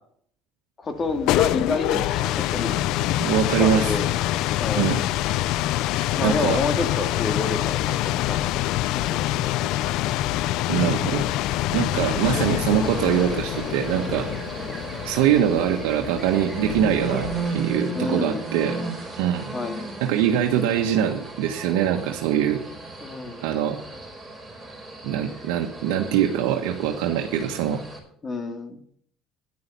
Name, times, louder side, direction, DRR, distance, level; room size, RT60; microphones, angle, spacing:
voice 1, 0.8-2.7 3.6-4.1 4.6-4.9 6.2-8.6 9.0-9.7 14.7-14.8 17.9-18.5 19.5-19.9 23.0-23.4 28.2-28.8, left 3 dB, 30° left, 7 dB, 2.1 m, -29 dB
sound 1, 1.0-17.7, left 15 dB, 75° left, 0.4 m, -26 dB
voice 2, 3.2-3.9 4.8-5.0 6.2-6.6 10.7-11.2 11.7-14.3 15.0-18.8 19.2-19.5 20.0-22.6 23.4-23.8 25.0-27.8, right 9 dB, 90° right, 2 dB, 1.3 m, -23 dB
sound 2, 12.2-28.0, right 3 dB, 5° right, 4.9 m, -35 dB
10.5 x 9.6 x 6.9 m, 0.63 s
cardioid pair, 110°, 0 cm